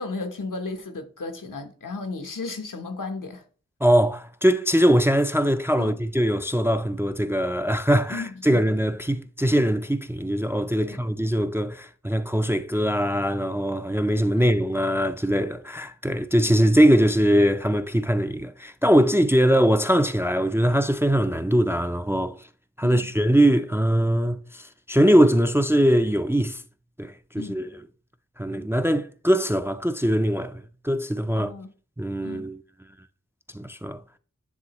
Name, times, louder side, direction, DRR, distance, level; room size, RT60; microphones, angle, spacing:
voice 1, 0.0-3.4 5.8-6.0 8.1-8.6 10.8-11.0 14.3-14.5 16.4-16.5 22.8-23.1 27.4-27.6 31.3-31.7 32.2-32.5, left 3 dB, 80° left, 0.9 m, -35 dB
voice 2, 3.8-22.4 22.8-26.6 27.0-27.7 28.4-31.5 32.0-32.6 33.5-34.0, equal, 10° right, 0.3 m, -22 dB
9.6 x 3.5 x 2.9 m
wide cardioid pair, 60°, 31 cm